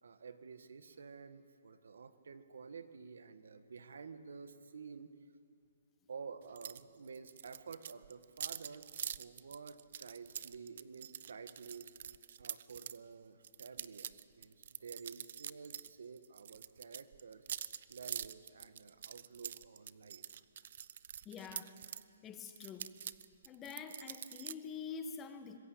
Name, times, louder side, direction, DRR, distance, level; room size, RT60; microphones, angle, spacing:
voice 1, 0.0-5.1 6.1-8.9 9.2-11.9 12.4-17.4 17.9-20.2, right 5 dB, 85° right, 11 dB, 1.6 m, -51 dB
sound 1, 6.6-6.8 7.1-13.0 13.4-15.9 16.2-22.0 22.5-24.5, right 9 dB, 55° right, 0.7 m, -45 dB
voice 2, 21.2-21.8 22.2-23.0 23.4-25.6, left 6 dB, 15° left, 8 dB, 1.4 m, -46 dB
25.5 x 21.0 x 8.7 m, 2.4 s
hypercardioid pair, 160°, 0 cm